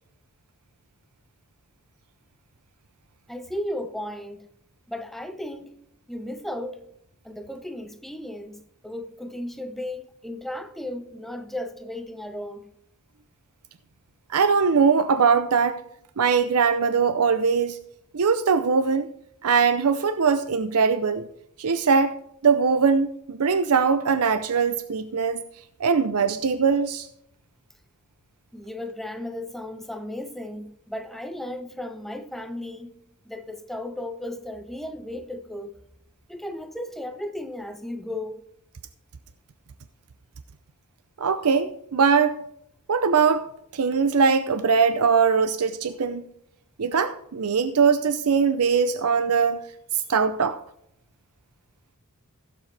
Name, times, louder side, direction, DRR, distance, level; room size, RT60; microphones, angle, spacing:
voice 1, 3.3-4.5 4.9-5.8 6.1-6.8 7.2-12.6 28.5-33.0 33.3-35.7 36.3-38.4, left 1 dB, ahead, 0.8 m, -35 dB
voice 2, 14.3-15.8 16.2-17.8 18.1-19.1 19.4-21.2 21.6-22.1 22.4-25.4 25.8-27.1 41.2-42.4 42.9-43.5 43.7-46.2 46.8-49.6 50.1-50.6, right 5 dB, 80° right, 0.6 m, -21 dB
16.0 x 7.6 x 3.3 m
head